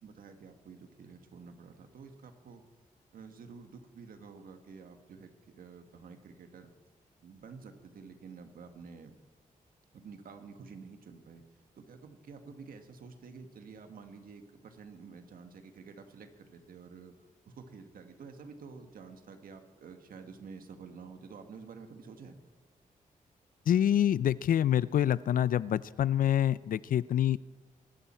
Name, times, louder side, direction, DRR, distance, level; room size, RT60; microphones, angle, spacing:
voice 1, 0.0-2.6 3.1-6.7 7.2-9.1 9.9-11.4 11.8-17.1 17.5-22.4, right 5 dB, 85° right, 6 dB, 1.6 m, -50 dB
voice 2, 23.7-27.4, left 10 dB, 75° left, 19 dB, 0.4 m, -26 dB
23.0 x 12.0 x 4.4 m, 1.3 s
cardioid pair, 90°, 14 cm